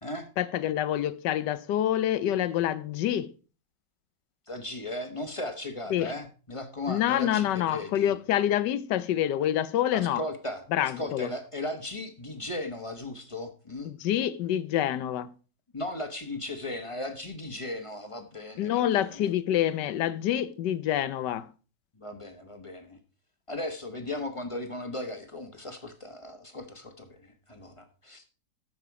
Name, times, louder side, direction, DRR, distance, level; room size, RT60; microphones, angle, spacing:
voice 1, 0.4-3.3 5.9-6.1 6.9-10.2 10.7-11.3 13.9-15.3 18.6-21.5, left 11 dB, 80° left, 1.3 m, -27 dB
voice 2, 4.5-8.1 9.9-13.9 15.7-19.3 21.9-23.0 23.5-28.3, left 1 dB, 20° left, 1.1 m, -37 dB
14.0 x 6.1 x 4.7 m
omnidirectional pair, 1.9 m